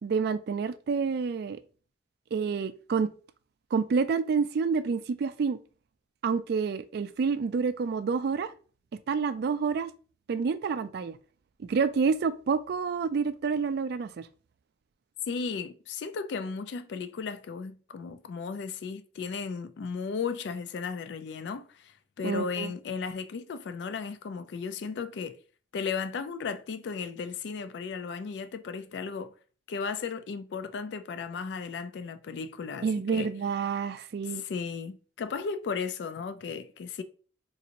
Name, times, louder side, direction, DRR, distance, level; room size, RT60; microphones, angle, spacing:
voice 1, 0.0-1.6 2.3-3.1 3.7-5.6 6.2-8.5 9.1-9.9 10.3-11.2 11.6-14.3 22.2-22.7 32.8-34.4, right 5 dB, 60° right, 0.3 m, -28 dB
voice 2, 15.3-25.4 25.7-29.3 29.7-33.3 34.3-37.0, left 5 dB, 65° left, 0.3 m, -35 dB
3.9 x 2.5 x 2.8 m
head